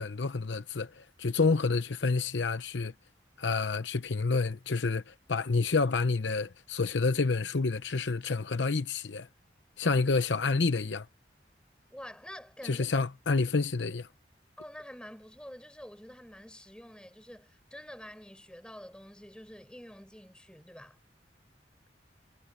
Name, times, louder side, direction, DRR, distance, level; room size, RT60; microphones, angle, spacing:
voice 1, 0.0-2.9 3.4-9.3 9.8-11.1 12.6-14.1, left 4 dB, 85° left, 0.8 m, -29 dB
voice 2, 11.9-13.1 14.6-21.0, equal, 5° left, 5.0 m, -47 dB
head